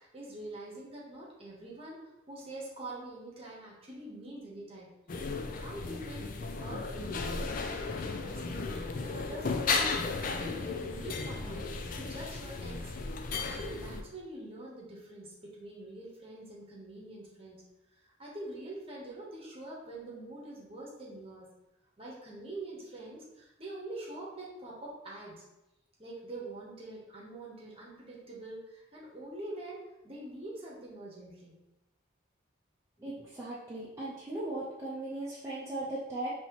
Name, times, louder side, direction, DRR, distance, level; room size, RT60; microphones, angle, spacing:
voice 1, 0.0-4.9 5.6-8.7 9.0-9.9 10.2-12.9 13.5-17.6 18.0-21.5 22.0-25.4 26.0-31.5, right 1 dB, 30° right, -4 dB, 1.1 m, -45 dB
sound 1, 5.1-14.0, left 4 dB, 45° left, 0.4 m, -35 dB
voice 2, 33.0-36.3, right 2 dB, 15° right, -9 dB, 0.6 m, -38 dB
5.4 x 3.0 x 3.0 m, 0.96 s
head